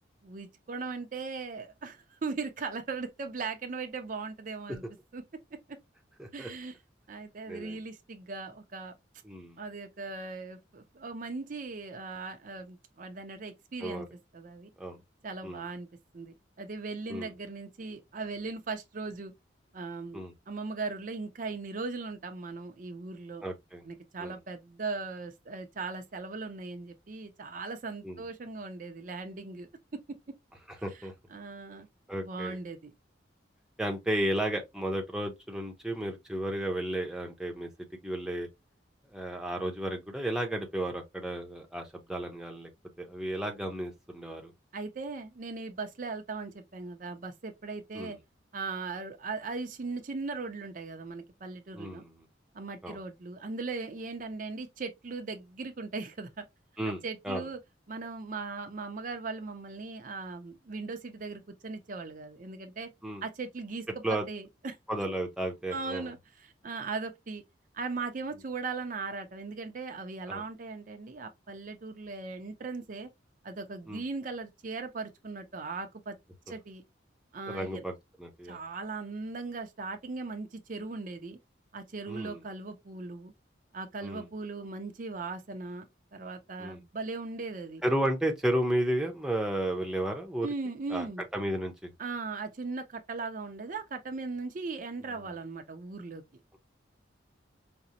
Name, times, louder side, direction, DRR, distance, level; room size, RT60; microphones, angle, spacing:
voice 1, 0.2-4.8 5.1-5.2 5.7-5.8 6.3-6.7 7.1-8.9 9.6-14.1 14.3-14.7 15.2-15.9 16.1-19.3 19.7-23.4 23.8-29.7 29.9-30.0 30.9-31.9 32.2-32.9 44.7-48.2 48.5-52.0 52.5-56.5 57.0-57.6 57.9-62.9 63.2-64.8 65.7-67.4 67.7-73.1 73.4-76.2 76.5-76.8 77.3-77.8 78.4-81.4 81.7-83.3 83.7-87.8 90.4-91.2 92.0-96.2, right 4 dB, 45° right, 0.5 m, -38 dB
voice 2, 6.2-6.5 7.5-7.8 9.2-9.6 13.8-14.0 14.8-15.0 15.4-15.6 17.1-17.3 20.1-20.3 23.4-23.8 24.2-24.4 28.0-28.2 30.7-31.1 32.1-32.6 33.8-37.7 38.0-38.5 39.1-42.7 43.0-44.5 47.9-48.2 51.7-52.2 52.8-53.0 56.8-57.4 63.0-63.2 64.0-64.3 64.9-66.1 70.3-70.4 73.9-74.0 77.5-78.6 82.1-82.4 84.0-84.2 86.6-86.8 87.8-90.5 90.9-91.1 91.3-91.9, right 1 dB, 5° right, 0.6 m, -33 dB
4.9 x 2.0 x 2.7 m
head